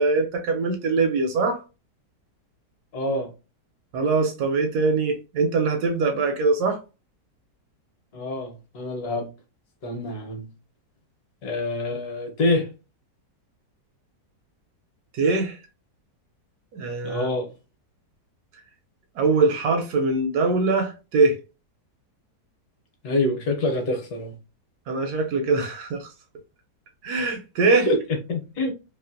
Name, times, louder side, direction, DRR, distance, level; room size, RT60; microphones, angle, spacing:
voice 1, 0.0-1.6 3.9-6.8 15.2-15.6 16.7-17.3 19.2-21.4 24.9-26.1 27.0-27.9, right 3 dB, 75° right, 1.1 m, -22 dB
voice 2, 2.9-3.3 8.1-9.3 9.8-10.5 11.4-12.7 17.0-17.5 23.0-24.3 27.9-28.0 28.3-28.7, left 2 dB, 70° left, 1.2 m, -26 dB
3.0 x 2.5 x 2.5 m
omnidirectional pair, 1.9 m